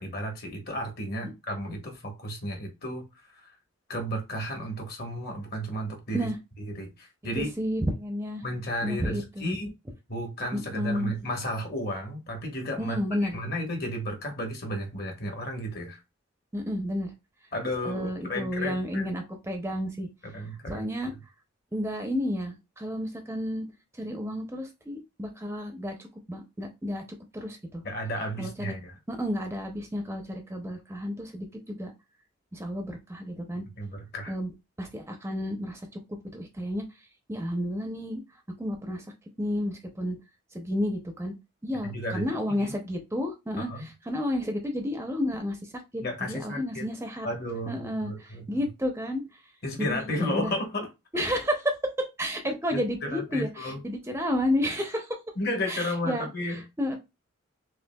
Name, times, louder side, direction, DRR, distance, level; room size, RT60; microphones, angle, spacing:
voice 1, 0.0-3.1 3.3-3.5 3.9-6.3 6.6-7.5 8.4-9.8 10.1-16.0 17.5-19.1 20.2-20.9 27.8-29.0 33.8-34.3 41.8-42.3 42.6-42.7 43.6-43.9 46.0-46.9 47.2-48.7 49.6-50.9 52.4-53.8 55.4-56.6, equal, 50° left, 1.2 m, -33 dB
voice 2, 7.4-8.4 8.8-9.6 10.5-11.1 12.8-13.4 16.5-17.1 17.8-20.1 20.7-21.1 21.7-23.7 24.0-27.0 27.3-27.8 28.4-28.7 29.1-31.9 32.5-33.6 34.3-34.5 34.8-36.0 36.3-36.8 37.3-38.2 38.6-39.0 39.4-40.2 40.5-41.3 41.6-47.3 47.7-49.2 49.8-50.5 51.1-55.2 55.7-56.3 56.8-57.0, equal, 10° right, 0.6 m, -31 dB
6.1 x 2.5 x 2.2 m
head